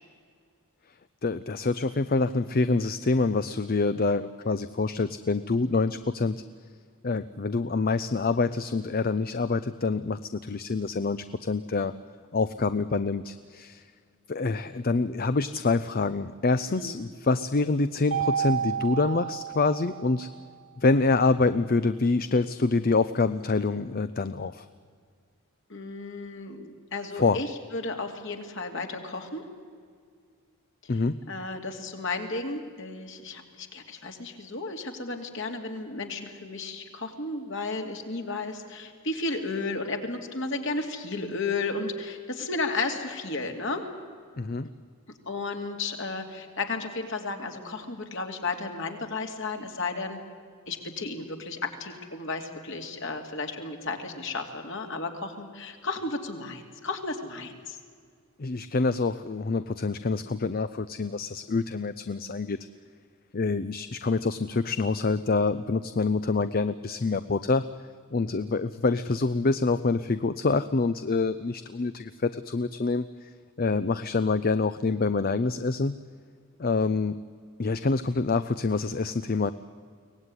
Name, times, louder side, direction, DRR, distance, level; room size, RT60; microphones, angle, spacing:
voice 1, 1.2-6.4 7.0-11.9 12.3-13.8 14.3-20.3 20.8-24.7 27.2-27.4 30.9-31.2 44.4-44.7 58.4-62.6 63.3-67.6 68.1-73.3 73.6-76.0 76.6-77.2 77.6-79.5, left 3 dB, 40° left, 13 dB, 0.6 m, -26 dB
voice 2, 16.7-17.0 25.7-29.4 30.8-30.9 31.3-43.9 45.3-50.2 50.7-57.8, left 3 dB, 60° left, 4 dB, 2.7 m, -33 dB
Mallet percussion, 18.1-20.4, right 8 dB, 70° right, 1.6 m, -31 dB
23.5 x 18.0 x 9.8 m, 2.1 s
head